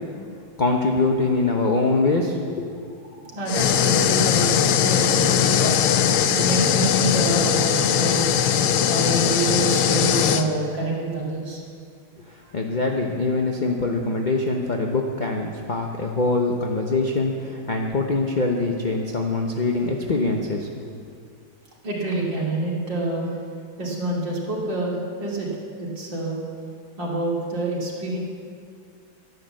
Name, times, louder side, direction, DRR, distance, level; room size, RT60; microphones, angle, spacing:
voice 1, 0.6-2.7 12.3-20.7, left 3 dB, 40° left, 1 dB, 0.6 m, -23 dB
voice 2, 3.1-11.6 21.8-23.4 23.8-25.5 25.8-26.4 27.0-28.2, right 2 dB, 60° right, -5 dB, 3.5 m, -27 dB
sound 1, 3.5-10.4, left 9 dB, 85° left, 1.6 m, -20 dB
12.5 x 11.0 x 7.7 m, 2.3 s
omnidirectional pair, 2.2 m